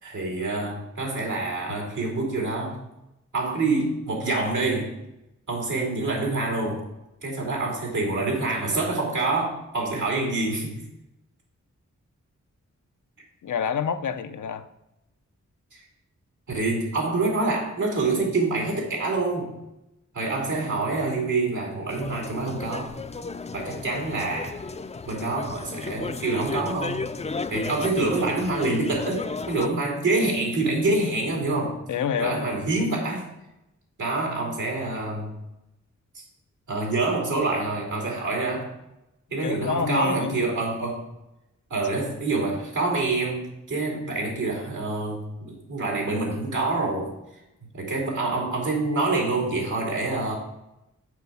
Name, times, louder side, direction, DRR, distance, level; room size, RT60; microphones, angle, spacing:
voice 1, 0.0-2.8 3.3-4.9 5.5-6.9 7.2-10.8 16.5-19.5 20.1-22.9 23.5-24.5 25.1-27.0 27.5-31.8 32.2-33.3 34.0-35.4 36.1-36.2 36.7-38.7 39.3-41.1 41.7-47.1 47.7-50.3, right 3 dB, 85° right, -1 dB, 2.5 m, -26 dB
voice 2, 13.4-14.7 25.8-26.1 31.9-32.6 39.4-40.4, left 7 dB, 80° left, 9 dB, 0.6 m, -28 dB
sound 1, 21.9-29.7, left 4 dB, 20° left, 0.4 m, -34 dB
6.4 x 4.8 x 6.8 m, 0.89 s
cardioid pair, 55°, 30 cm